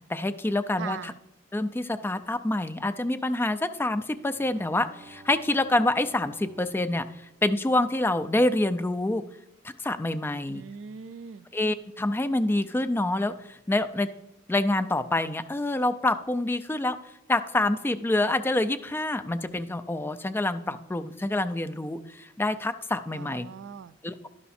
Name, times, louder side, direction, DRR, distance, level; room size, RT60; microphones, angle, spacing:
voice 1, 0.1-1.1 1.5-7.1 7.4-9.2 9.8-10.6 11.5-13.3 13.7-14.1 14.5-17.0 17.3-23.5 24.0-24.3, left 2 dB, 10° left, 10 dB, 0.3 m, -26 dB
voice 2, 0.8-1.2 10.5-11.5 23.1-23.9, right 6 dB, 70° right, 16 dB, 0.3 m, -40 dB
Bowed string instrument, 4.2-8.0, right 3 dB, 25° right, 0.7 m, -53 dB
11.0 x 5.7 x 4.2 m, 0.87 s
head